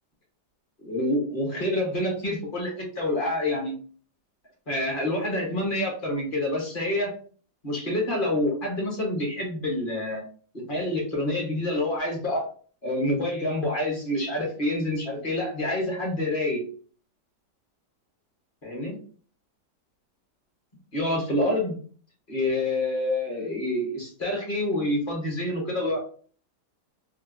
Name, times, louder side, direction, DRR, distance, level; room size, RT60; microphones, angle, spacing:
voice 1, 0.8-3.8 4.7-7.1 7.6-10.2 10.5-12.4 12.8-16.6 18.6-19.0 20.9-21.7 22.3-26.0, left 1 dB, 40° left, -2 dB, 0.8 m, -27 dB
2.9 x 2.2 x 2.4 m, 0.43 s
omnidirectional pair, 1.8 m